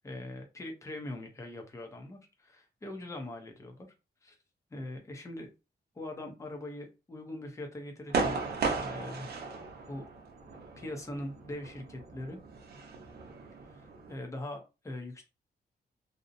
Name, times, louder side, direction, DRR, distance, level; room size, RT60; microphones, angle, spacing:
voice 1, 0.0-3.9 4.2-4.4 4.7-5.5 5.9-9.3 9.9-10.1 10.8-12.4 13.7-15.2, left 1 dB, 20° left, 3 dB, 0.6 m, -42 dB
sound 1, 8.1-14.1, right 4 dB, 75° right, 0.7 m, -36 dB
2.7 x 2.0 x 2.5 m, 0.28 s
wide cardioid pair, 135°, 17 cm